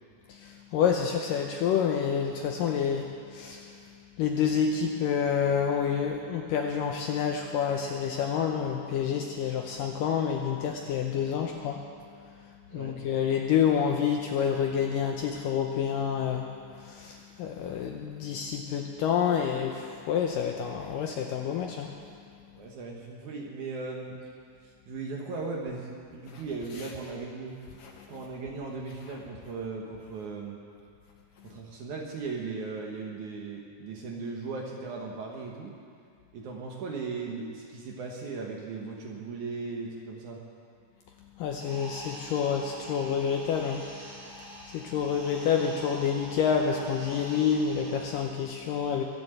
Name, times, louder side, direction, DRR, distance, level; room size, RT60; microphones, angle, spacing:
voice 1, 0.3-11.8 12.2-16.5 16.7-21.9 26.3-26.4 26.8-26.9 27.8-28.2 41.4-43.9 44.3-49.0, left 7 dB, 75° left, 2 dB, 2.1 m, -28 dB
voice 2, 22.6-24.2 24.9-27.6 28.1-30.6 31.4-35.8 36.3-40.4, right 4 dB, 60° right, -1 dB, 2.3 m, -37 dB
sound 1, 41.6-48.2, right 1 dB, 85° right, 7.5 m, -45 dB
22.5 x 7.5 x 7.9 m, 2.3 s
omnidirectional pair, 4.7 m